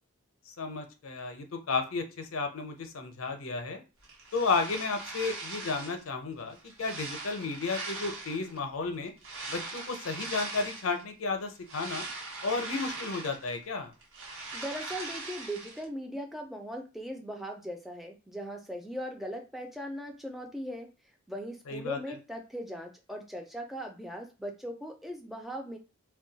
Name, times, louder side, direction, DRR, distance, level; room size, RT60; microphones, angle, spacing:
voice 1, 0.5-3.8 4.3-9.1 9.5-12.1 12.4-13.9 21.7-22.0, left 4 dB, 75° left, 5 dB, 0.6 m, -33 dB
sound 1, 4.0-6.1 6.5-8.6 9.2-11.0 11.4-13.6 13.9-15.8, right 3 dB, 65° right, 1.1 m, -40 dB
voice 2, 14.5-20.9 21.3-25.8, equal, ahead, 2 dB, 0.4 m, -39 dB
2.3 x 2.2 x 3.9 m, 0.32 s
head